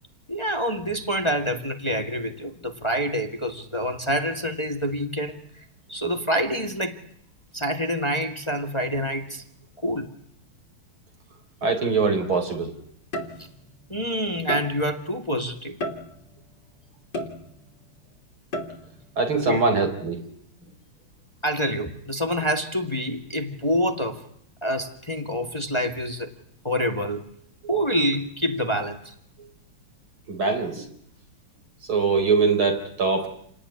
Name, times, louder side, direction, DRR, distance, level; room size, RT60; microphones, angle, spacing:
voice 1, 0.3-5.4 5.9-7.0 7.5-9.4 9.8-10.1 13.9-15.8 19.4-19.6 21.4-24.2 24.6-26.3 26.6-27.2 27.7-29.1, equal, 15° left, 5 dB, 2.0 m, -26 dB
voice 2, 11.6-12.7 19.2-20.2 30.3-30.9 31.9-33.3, right 4 dB, 75° right, 5 dB, 5.0 m, -22 dB
sound 1, 13.1-13.8 14.5-15.0 15.8-16.4 17.1-17.8 18.5-19.0, equal, 55° left, 3.5 m, -33 dB
29.0 x 18.5 x 9.8 m, 0.68 s
omnidirectional pair, 2.3 m